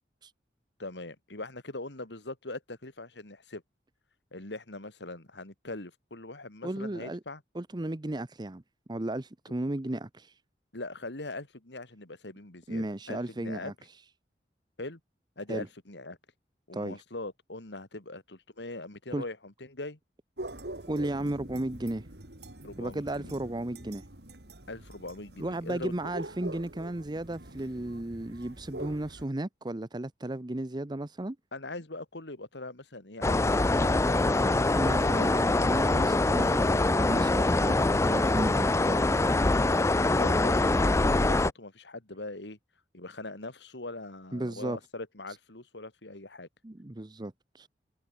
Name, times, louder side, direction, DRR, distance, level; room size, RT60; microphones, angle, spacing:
voice 1, 0.8-3.6 4.3-7.4 10.7-13.7 14.8-15.0 15.4-16.2 16.7-20.0 22.6-23.4 24.7-25.9 31.5-34.5 35.2-35.4 39.9-42.6 42.9-46.5, left 2 dB, 85° left, 2.8 m, -41 dB
voice 2, 6.6-7.2 7.5-8.6 8.9-10.3 12.7-13.7 15.5-15.7 16.7-17.0 19.1-19.2 20.9-22.1 22.8-24.0 25.4-31.4 34.8-39.0 44.3-44.8 46.6-47.7, right 1 dB, 25° right, 0.8 m, -34 dB
sound 1, 20.4-29.3, right 1 dB, 70° right, 3.7 m, -44 dB
sound 2, 33.2-41.5, left 2 dB, 15° left, 0.5 m, -24 dB
head